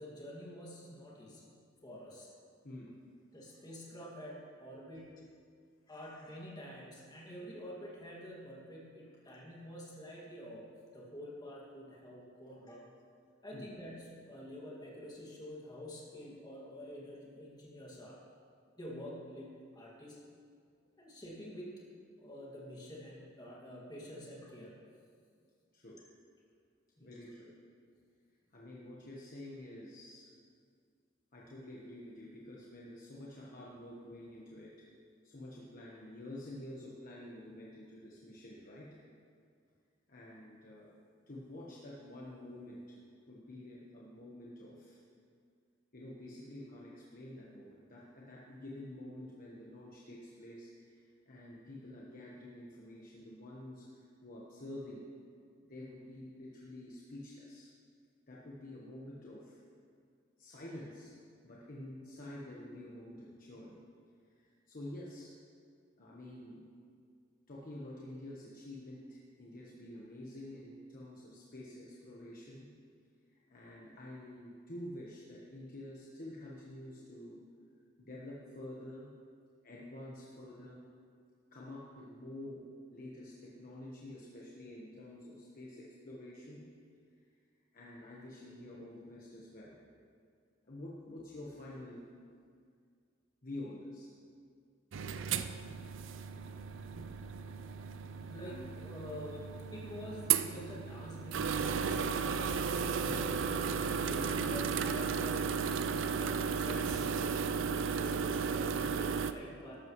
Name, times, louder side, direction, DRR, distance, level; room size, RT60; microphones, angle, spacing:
voice 1, 0.0-1.5 1.8-2.3 3.3-5.1 5.9-10.7 10.9-12.9 13.4-18.2 18.8-20.2 21.0-21.8 22.2-24.8 27.0-27.3 98.2-103.4 104.0-109.9, equal, 20° left, -4 dB, 2.2 m, -48 dB
voice 2, 27.0-27.5 28.5-30.3 31.3-34.9 35.2-38.9 40.1-40.9 41.3-43.0 43.3-45.0 45.9-55.1 55.6-57.7 58.3-59.6 60.4-61.1 61.4-63.8 64.3-65.3 66.0-66.6 67.5-72.7 73.3-77.4 78.0-79.1 79.6-80.8 81.5-82.7 82.9-86.6 87.7-89.8 90.6-92.0 93.4-94.1 98.4-98.7 103.0-103.2 104.0-104.2, left 1 dB, 45° left, -5 dB, 1.3 m, -48 dB
sound 1, 94.9-109.3, right 6 dB, 70° right, 0.5 m, -34 dB
13.0 x 12.0 x 3.2 m, 2.2 s
head